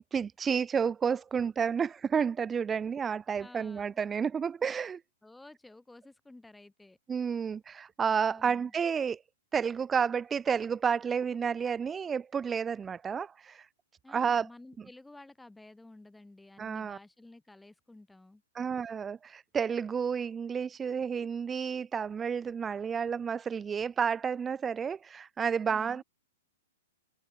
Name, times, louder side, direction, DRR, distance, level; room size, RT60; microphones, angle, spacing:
voice 1, 0.0-5.0 7.1-9.2 9.5-13.7 14.1-14.5 16.6-17.0 18.5-26.0, right 6 dB, 15° right, 0.9 m, -31 dB
voice 2, 3.4-4.0 5.2-7.0 8.3-8.7 14.0-18.4 25.7-26.0, left 2 dB, 5° left, 4.9 m, -53 dB
hypercardioid pair, 135°, 0 cm